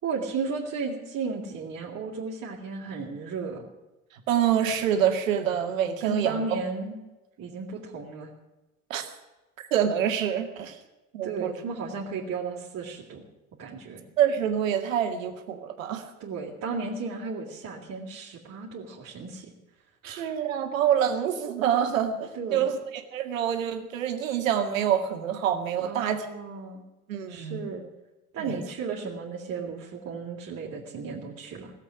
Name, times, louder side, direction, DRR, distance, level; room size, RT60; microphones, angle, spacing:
voice 1, 0.0-3.6 6.0-7.0 7.4-8.3 11.2-13.2 13.6-14.0 16.2-19.5 20.0-20.2 22.3-22.8 25.8-26.8 27.3-27.9 28.3-31.7, right 4 dB, 40° right, -4 dB, 3.2 m, -34 dB
voice 2, 4.3-6.4 8.9-9.1 9.7-10.8 11.1-11.5 14.2-16.1 20.0-22.8 23.1-26.3 27.1-27.6 28.4-28.6, right 9 dB, 70° right, 6 dB, 2.1 m, -26 dB
18.0 x 8.2 x 9.9 m, 1.0 s
figure-of-eight pair, 65°, 41 cm